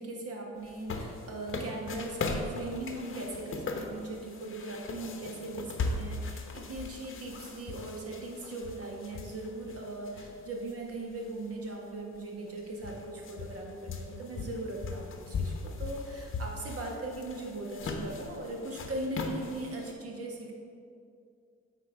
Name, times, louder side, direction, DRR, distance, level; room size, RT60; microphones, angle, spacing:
voice 1, 0.0-20.5, right 2 dB, 50° right, 0 dB, 1.6 m, -39 dB
sound 1, 0.7-10.7 11.2-11.3 12.2-12.3 12.5-19.9, left 3 dB, 45° left, 0.9 m, -39 dB
8.3 x 4.5 x 5.1 m, 2.4 s
cardioid pair, 90°, 30 cm